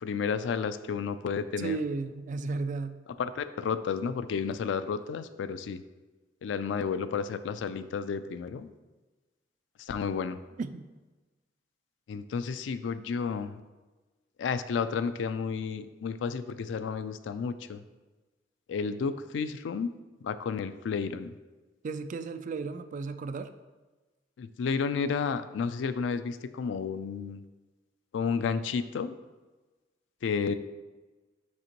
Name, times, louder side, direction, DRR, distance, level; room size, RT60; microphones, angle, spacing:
voice 1, 0.0-1.8 3.2-5.8 6.4-8.7 9.8-10.4 12.1-13.6 14.4-17.8 18.7-19.9 20.2-21.3 24.4-27.4 28.1-29.1 30.2-30.5, left 5 dB, 90° left, 13 dB, 0.3 m, -31 dB
voice 2, 1.6-3.0 10.6-10.8 21.8-23.5, right 4 dB, 45° right, 10 dB, 0.3 m, -34 dB
6.3 x 5.0 x 3.0 m, 1.2 s
head